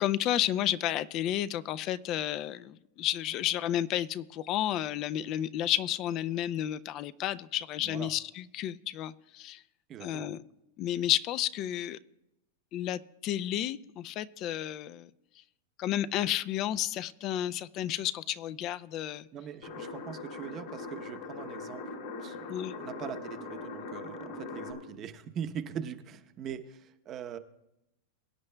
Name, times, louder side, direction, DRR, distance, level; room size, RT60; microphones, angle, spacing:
voice 1, 0.0-9.6 10.0-10.4 10.8-12.0 12.7-15.1 15.8-19.2 22.5-22.7, left 12 dB, 40° left, 15 dB, 0.4 m, -31 dB
voice 2, 7.8-8.1 9.9-10.3 19.3-27.4, right 8 dB, 30° right, 10 dB, 0.8 m, -42 dB
sound 1, 19.6-24.7, left 3 dB, 70° left, 3.0 m, -41 dB
23.0 x 9.6 x 2.2 m, 0.88 s
supercardioid pair, 135°, 0 cm